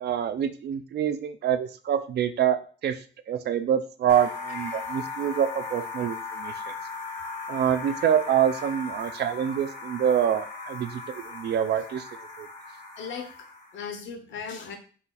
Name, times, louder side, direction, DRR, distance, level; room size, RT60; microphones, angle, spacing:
voice 1, 0.0-3.0 3.3-6.5 7.5-12.0 12.4-12.5, right 9 dB, 60° right, 11 dB, 0.4 m, -26 dB
sound 1, 4.1-13.8, left 3 dB, 35° left, 1.0 m, -38 dB
voice 2, 13.0-14.8, left 6 dB, 90° left, 5 dB, 0.9 m, -37 dB
4.2 x 2.4 x 3.8 m, 0.41 s
wide cardioid pair, 170°, 19 cm